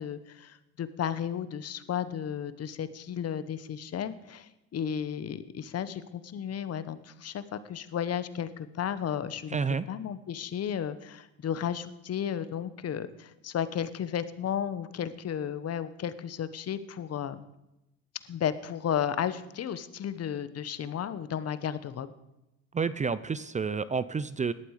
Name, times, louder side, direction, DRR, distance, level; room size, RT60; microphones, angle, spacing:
voice 1, 0.0-9.6 9.9-17.4 18.3-22.1, left 9 dB, 45° left, 14 dB, 1.1 m, -33 dB
voice 2, 9.5-9.9 22.7-24.5, right 5 dB, 20° right, 16 dB, 0.6 m, -29 dB
17.5 x 12.0 x 4.9 m, 0.92 s
supercardioid pair, 90°, 33 cm